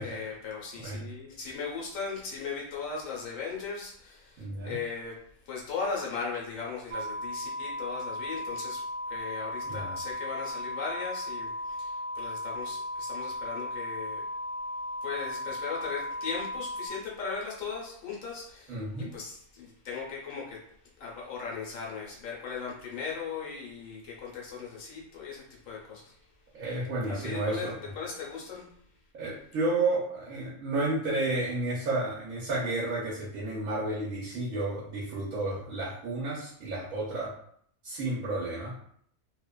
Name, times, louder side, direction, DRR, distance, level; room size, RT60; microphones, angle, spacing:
voice 1, 0.0-5.2 5.5-14.2 15.0-20.6 21.0-26.1 27.1-28.7, left 5 dB, 75° left, -3 dB, 1.2 m, -38 dB
voice 2, 4.4-4.8 9.7-9.9 18.7-19.1 26.5-27.7 29.1-37.3 37.8-38.7, right 2 dB, 85° right, -6 dB, 1.1 m, -31 dB
sound 1, 6.9-16.9, left 1 dB, 60° right, 0.7 m, -36 dB
2.8 x 2.2 x 2.2 m, 0.65 s
omnidirectional pair, 1.4 m